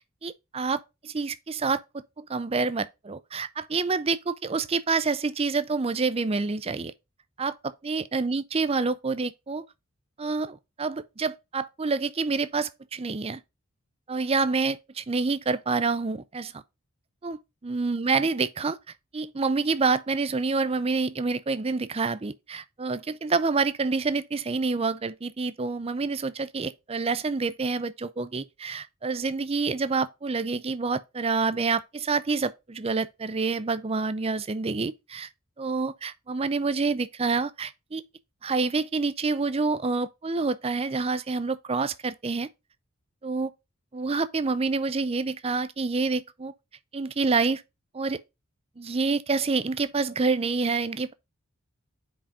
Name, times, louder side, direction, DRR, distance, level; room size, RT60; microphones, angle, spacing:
voice 1, 0.2-1.8 2.2-6.9 7.4-9.6 10.2-13.4 14.1-16.6 17.2-18.8 19.1-35.3 35.6-38.0 38.4-42.5 43.2-43.5 43.9-46.5 46.9-47.6 47.9-48.2 48.8-51.1, right 4 dB, 25° right, 0.5 m, -27 dB
8.7 x 5.1 x 2.5 m
head